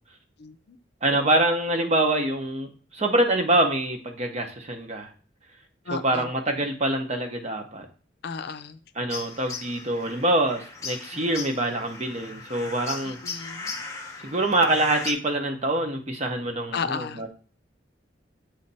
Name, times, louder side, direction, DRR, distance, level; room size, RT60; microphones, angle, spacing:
voice 1, 0.4-0.8 5.9-6.3 8.2-8.8 11.1-11.4 13.0-13.8 16.7-17.2, left 5 dB, 60° left, 11 dB, 0.5 m, -34 dB
voice 2, 1.0-5.1 5.9-7.9 9.0-13.2 14.2-17.3, right 1 dB, 40° right, 4 dB, 0.9 m, -25 dB
sound 1, 9.1-15.1, left 4 dB, 20° left, 1.0 m, -38 dB
7.9 x 3.3 x 4.1 m, 0.40 s
head